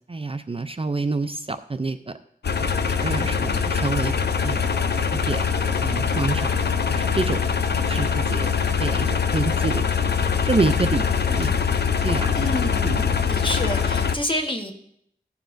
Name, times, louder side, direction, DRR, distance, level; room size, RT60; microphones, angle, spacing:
voice 1, 0.1-2.1 2.6-4.1 4.4-4.6 4.9-5.5 5.8-6.6 6.9-7.4 7.9-8.5 8.8-9.8 10.4-11.5 12.0-12.5 12.8-13.1, right 3 dB, 35° right, 9 dB, 0.4 m, -27 dB
sound 1, 2.4-14.1, left 6 dB, 80° left, 0.5 m, -23 dB
voice 2, 12.4-13.0 13.3-14.7, left 1 dB, 30° left, 3 dB, 1.2 m, -28 dB
15.5 x 7.0 x 2.6 m, 0.69 s
wide cardioid pair, 70°, 17 cm